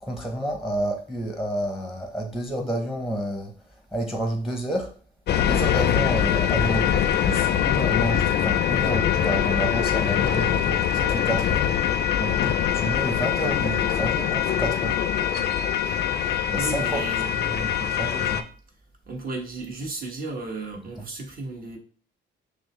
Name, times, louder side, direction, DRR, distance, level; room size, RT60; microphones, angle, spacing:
voice 1, 0.0-3.5 3.9-5.0 5.4-11.6 12.2-15.0 16.4-17.0 17.3-18.5, right 1 dB, ahead, 0.8 m, -30 dB
sound 1, 5.3-18.4, left 9 dB, 55° left, 0.4 m, -23 dB
voice 2, 16.5-17.3 19.1-21.8, right 2 dB, 45° right, 1.2 m, -34 dB
6.1 x 2.1 x 3.2 m
cardioid pair, 90°, 20 cm